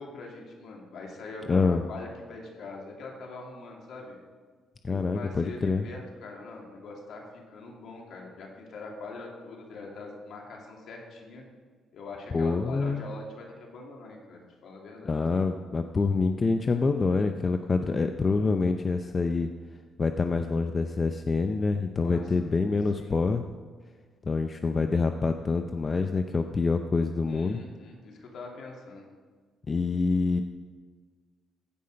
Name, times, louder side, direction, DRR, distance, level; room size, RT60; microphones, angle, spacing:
voice 1, 0.0-4.2 4.9-11.4 11.9-15.2 22.0-22.5 23.0-23.1 27.3-29.1, left 3 dB, 70° left, 0 dB, 2.6 m, -43 dB
voice 2, 1.5-1.8 4.8-5.9 12.3-13.0 15.1-19.5 20.0-23.4 24.2-27.6 29.7-30.4, left 4 dB, 35° left, 6 dB, 0.6 m, -26 dB
15.5 x 5.5 x 5.2 m, 1.5 s
cardioid pair, 90°, 0 cm